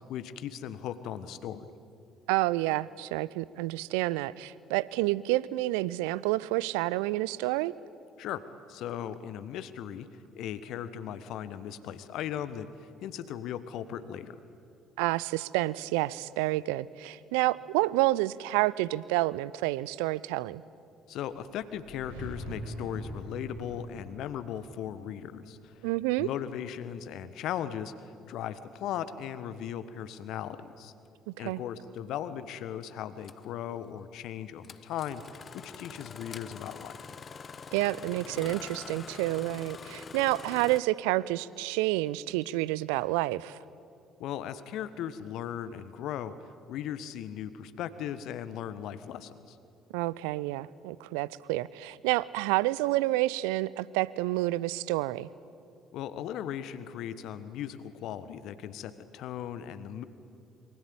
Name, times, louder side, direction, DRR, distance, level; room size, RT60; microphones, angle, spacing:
voice 1, 0.1-1.6 8.2-8.4 8.7-10.1 10.3-14.4 21.1-25.8 26.2-30.9 31.4-37.0 44.2-49.6 55.9-60.0, left 10 dB, 60° left, 14 dB, 1.3 m, -38 dB
voice 2, 2.3-7.7 15.0-20.6 25.8-26.3 31.3-31.6 37.7-43.6 49.9-55.3, right 18 dB, 70° right, 20 dB, 0.6 m, -29 dB
sound 1, 21.6-26.5, equal, 85° right, 4.9 m, -43 dB
Engine starting, 32.0-32.1 33.2-33.5 34.6-40.8, left 6 dB, 40° left, 1.0 m, -45 dB
27.5 x 24.0 x 8.7 m, 2.6 s
figure-of-eight pair, 50°, 0 cm